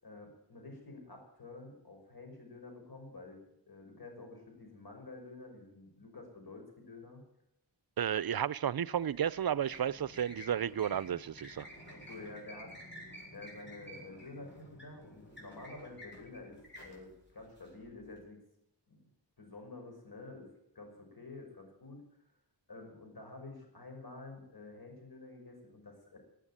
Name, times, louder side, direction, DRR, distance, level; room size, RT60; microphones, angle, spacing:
voice 1, 0.0-3.4 3.7-7.2 11.9-12.7 13.3-18.4 18.9-19.1 19.4-20.5 20.7-22.0 22.7-26.2, left 3 dB, 60° left, 5.8 m, -49 dB
voice 2, 8.0-11.7, right 9 dB, 60° right, 0.5 m, -32 dB
sound 1, 8.9-18.2, equal, 25° left, 7.3 m, -52 dB
16.5 x 8.9 x 9.9 m
wide cardioid pair, 65°, 42 cm